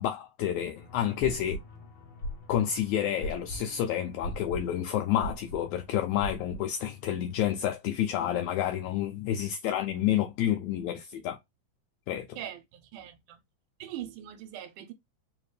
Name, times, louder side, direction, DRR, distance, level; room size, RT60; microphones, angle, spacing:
voice 1, 0.0-1.6 2.5-11.4 12.1-12.3, left 11 dB, 80° left, 1.8 m, -29 dB
sound 1, 0.7-7.3, equal, 65° left, 1.2 m, -41 dB
voice 2, 1.1-1.4 12.4-13.4 13.8-14.9, right 11 dB, 80° right, 2.3 m, -42 dB
4.9 x 2.5 x 3.2 m
omnidirectional pair, 3.7 m